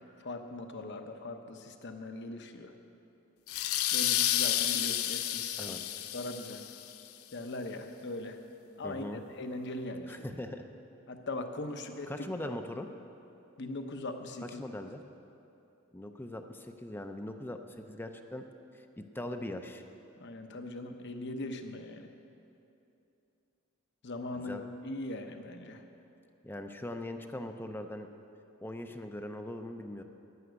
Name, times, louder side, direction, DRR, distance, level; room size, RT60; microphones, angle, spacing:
voice 1, 0.0-2.7 3.9-5.8 6.1-6.6 7.3-8.4 8.8-10.3 11.1-12.5 13.6-14.6 20.2-22.1 24.0-25.8, left 2 dB, 55° left, 6 dB, 0.9 m, -40 dB
sound 1, 3.5-6.9, left 12 dB, 90° left, 0.6 m, -31 dB
voice 2, 5.6-6.0 8.8-9.2 10.1-10.7 12.1-12.9 14.6-15.0 15.9-17.6 17.9-18.4 18.7-19.8 24.3-24.6 26.4-28.1 28.6-30.0, left 1 dB, 10° left, 6 dB, 0.5 m, -40 dB
11.0 x 10.0 x 8.0 m, 2.8 s
head